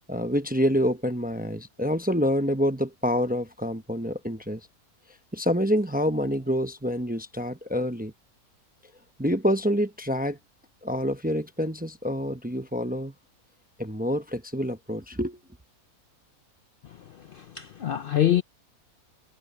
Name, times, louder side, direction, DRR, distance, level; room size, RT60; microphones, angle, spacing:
voice 1, 0.1-4.6 5.3-8.1 9.2-10.4 10.8-13.1 13.8-15.4, equal, 10° right, 0.5 m, -27 dB
voice 2, 17.3-18.4, left 11 dB, 85° left, 0.4 m, -24 dB
omnidirectional pair, 1.6 m